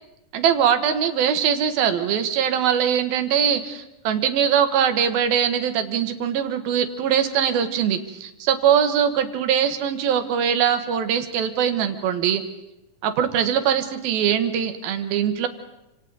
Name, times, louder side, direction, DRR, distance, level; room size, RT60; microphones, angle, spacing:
voice 1, 0.3-12.4 13.0-15.5, right 8 dB, 80° right, 8 dB, 3.2 m, -22 dB
28.5 x 26.0 x 4.0 m, 0.93 s
omnidirectional pair, 4.2 m